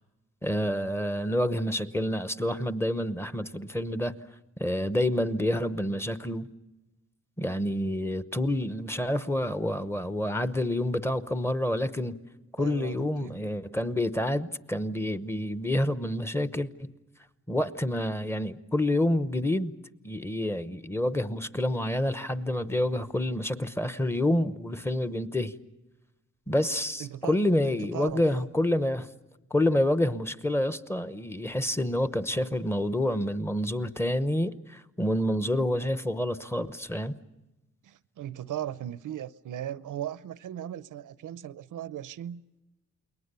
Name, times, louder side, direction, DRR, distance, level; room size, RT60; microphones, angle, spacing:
voice 1, 0.4-4.1 4.6-6.5 7.4-12.1 12.5-16.9 17.5-19.7 20.0-25.5 26.5-29.1 29.5-37.1, left 1 dB, 10° left, 0.9 m, -28 dB
voice 2, 12.6-13.3 27.0-27.4 27.7-28.2 37.8-42.4, right 11 dB, 85° right, 0.7 m, -37 dB
29.0 x 22.0 x 6.8 m
wide cardioid pair, 115°, 30 cm